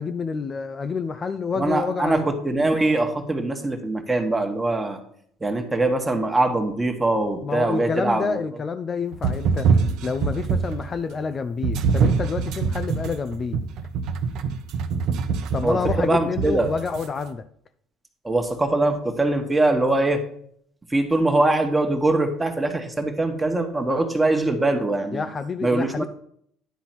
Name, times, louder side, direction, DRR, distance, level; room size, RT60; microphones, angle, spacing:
voice 1, 0.0-2.3 7.4-9.7 10.0-13.6 15.5-17.4 25.1-26.1, left 5 dB, 30° left, 10 dB, 0.5 m, -28 dB
voice 2, 1.6-5.0 5.4-8.4 15.6-16.7 18.2-20.2 20.9-25.2 25.6-26.1, right 2 dB, 15° right, 5 dB, 1.4 m, -22 dB
sound 1, 9.1-10.9 11.6-17.1, right 5 dB, 65° right, 0.8 m, -24 dB
10.5 x 4.0 x 5.9 m, 0.66 s
supercardioid pair, 100°, 0 cm